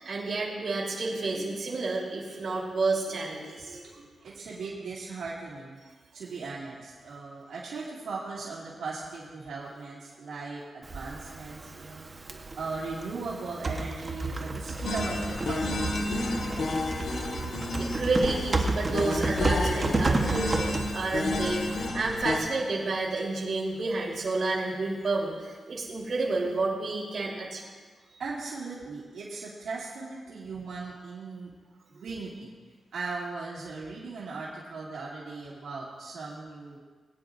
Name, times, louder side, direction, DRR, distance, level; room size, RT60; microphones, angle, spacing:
voice 1, 0.0-3.8 12.3-12.4 17.7-27.6 31.9-32.1, right 3 dB, 55° right, -5 dB, 3.7 m, -30 dB
voice 2, 4.2-5.8 6.1-12.1 12.6-17.1 28.2-31.5 31.9-32.5 32.9-36.8, right 4 dB, 90° right, -7 dB, 2.3 m, -38 dB
Typing, 10.8-21.9, right 3 dB, 30° right, 1.1 m, -32 dB
sound 1, 14.8-22.4, left 2 dB, 70° left, 1.5 m, -31 dB
21.0 x 9.6 x 2.6 m, 1.5 s
wide cardioid pair, 120°, 0 cm